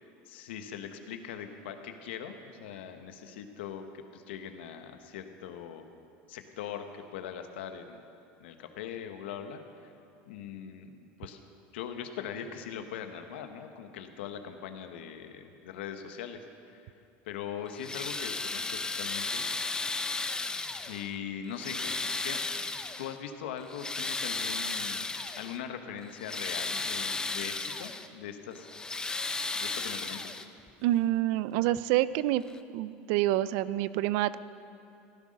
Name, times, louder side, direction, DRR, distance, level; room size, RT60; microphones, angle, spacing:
voice 1, 0.0-5.9 6.3-8.0 8.4-9.9 10.3-11.4 11.7-16.4 16.7-16.9 17.2-19.4 20.8-22.5 23.0-25.1 25.4-28.7 29.5-30.3, left 8 dB, 85° left, 7 dB, 1.1 m, -41 dB
sound 1, 17.7-21.1 21.5-23.2 23.6-25.6 26.0-28.1 28.5-30.7 31.8-31.9 32.5-32.6, left 3 dB, 15° left, 0.6 m, -34 dB
voice 2, 30.8-32.4 32.7-34.4, right 14 dB, 70° right, 17 dB, 0.5 m, -27 dB
16.0 x 10.0 x 6.5 m, 2.7 s
supercardioid pair, 110°, 6 cm